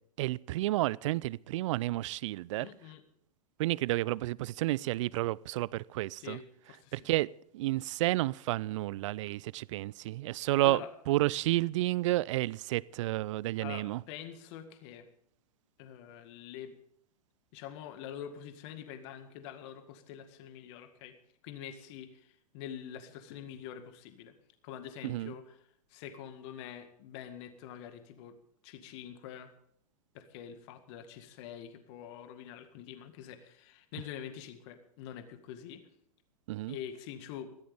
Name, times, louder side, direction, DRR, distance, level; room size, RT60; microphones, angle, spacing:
voice 1, 0.2-2.7 3.6-6.4 6.9-10.8 11.1-14.0 25.0-25.3 36.5-36.8, right 17 dB, 55° right, 0.5 m, -31 dB
voice 2, 2.6-3.0 6.2-7.1 10.4-10.9 13.6-15.1 15.8-16.7 17.5-21.2 21.4-24.3 24.6-28.4 28.6-29.5 30.1-35.8 36.7-37.5, left 9 dB, 50° left, 1.9 m, -45 dB
21.5 x 15.5 x 3.6 m
hypercardioid pair, 105°, 19 cm